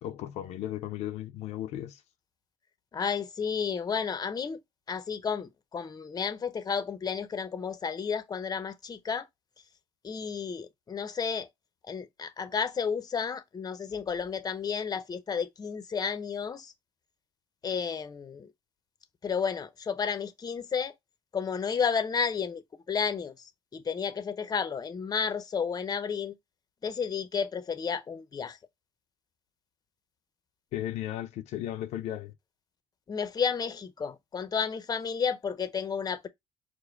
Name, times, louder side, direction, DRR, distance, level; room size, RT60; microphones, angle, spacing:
voice 1, 0.0-2.0 30.7-32.3, left 12 dB, 75° left, 0.6 m, -35 dB
voice 2, 2.9-4.6 4.9-9.3 10.0-11.5 11.8-16.7 17.6-18.5 19.2-20.9 21.3-22.6 22.9-26.3 26.8-28.6 33.1-36.3, left 6 dB, 35° left, 0.8 m, -32 dB
4.8 x 2.2 x 4.5 m
supercardioid pair, 75°, 11 cm